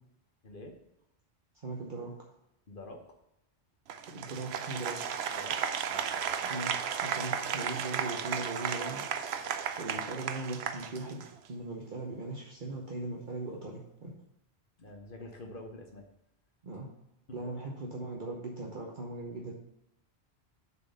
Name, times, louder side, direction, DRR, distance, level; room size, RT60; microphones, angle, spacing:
voice 1, 0.4-0.8 2.7-3.1 5.3-5.6 5.9-6.3 14.8-16.1, left 2 dB, 55° left, 3 dB, 1.1 m, -47 dB
voice 2, 1.5-2.3 4.1-5.0 6.4-6.7 7.0-9.0 9.8-14.1 16.6-16.9 17.3-19.5, right 2 dB, 50° right, -2 dB, 1.1 m, -39 dB
Applause, 3.9-11.5, right 7 dB, 75° right, 0.9 m, -34 dB
7.0 x 4.2 x 6.6 m, 0.84 s
omnidirectional pair, 1.1 m